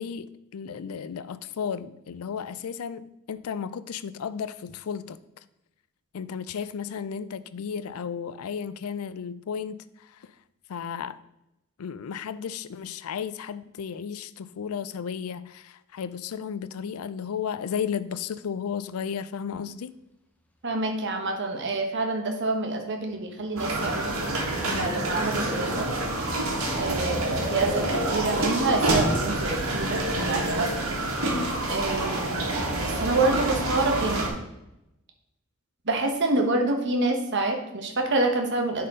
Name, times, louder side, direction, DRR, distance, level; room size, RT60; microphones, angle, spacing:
voice 1, 0.0-5.2 6.1-10.3 10.7-11.2 11.8-19.9, left 7 dB, 90° left, 0.4 m, -34 dB
voice 2, 20.6-25.9 26.8-30.7 31.7-32.4 32.8-34.4 35.9-38.9, right 2 dB, 55° right, 1.2 m, -27 dB
sound 1, 23.0-28.0, equal, 10° left, 0.7 m, -43 dB
sound 2, 23.6-34.3, right 1 dB, 80° right, 1.9 m, -27 dB
10.0 x 4.3 x 3.7 m
head